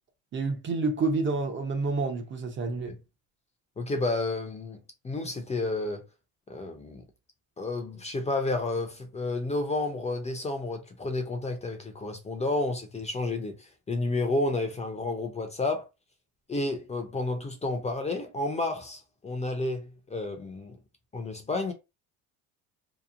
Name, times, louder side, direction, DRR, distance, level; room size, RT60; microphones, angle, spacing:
voice 1, 0.3-2.9, right 3 dB, 35° right, 0.7 m, -28 dB
voice 2, 3.8-4.8 5.0-6.0 6.5-7.0 7.6-15.9 16.5-20.8 21.1-21.7, left 2 dB, 20° left, 0.6 m, -31 dB
2.9 x 2.1 x 2.5 m
cardioid pair, 110°, 35 cm